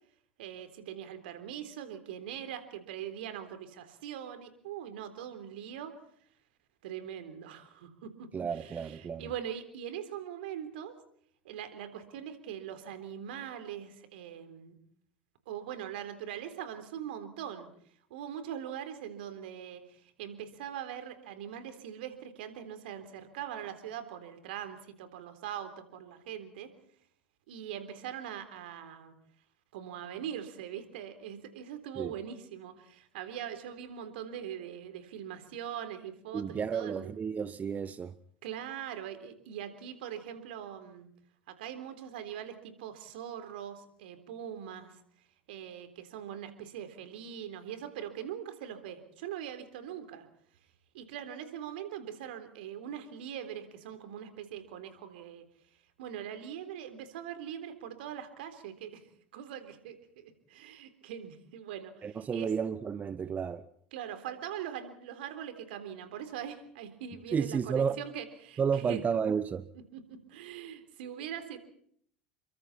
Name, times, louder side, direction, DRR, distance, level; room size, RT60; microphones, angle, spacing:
voice 1, 0.4-5.9 6.8-11.0 11.5-14.7 15.5-17.7 18.1-26.7 27.5-29.1 29.7-37.1 38.4-41.1 41.5-45.0 45.5-50.3 50.9-55.4 56.0-59.0 59.3-62.5 63.9-69.0 69.9-71.6, right 9 dB, 65° right, 3.7 m, -42 dB
voice 2, 8.3-9.3 32.0-32.1 36.3-38.1 62.0-63.6 67.3-68.0 68.6-69.7, right 6 dB, 25° right, 1.0 m, -32 dB
29.5 x 24.0 x 4.4 m
figure-of-eight pair, 75°, 6 cm